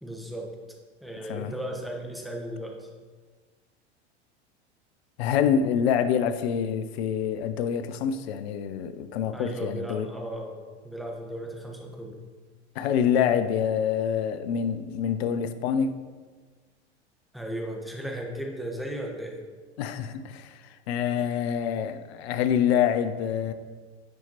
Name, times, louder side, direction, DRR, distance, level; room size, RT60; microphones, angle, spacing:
voice 1, 0.0-0.5 1.0-2.9 9.3-12.2 17.3-19.4, right 1 dB, ahead, 1.0 m, -36 dB
voice 2, 5.2-10.1 12.8-16.0 19.8-23.5, left 8 dB, 60° left, 0.6 m, -26 dB
9.7 x 4.2 x 2.9 m
figure-of-eight pair, 85°, 35 cm